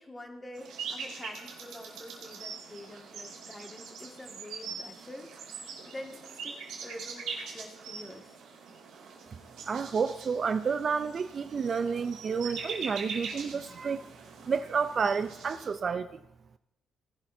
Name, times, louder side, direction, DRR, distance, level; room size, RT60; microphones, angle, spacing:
voice 1, 0.0-6.6 6.8-8.4, left 1 dB, 20° left, 1.9 m, -46 dB
sound 1, 0.5-15.7, right 5 dB, 85° right, 2.3 m, -42 dB
voice 2, 9.7-14.1 14.5-16.2, right 5 dB, 45° right, 0.5 m, -30 dB
18.5 x 11.5 x 2.7 m
cardioid pair, 90°, 0 cm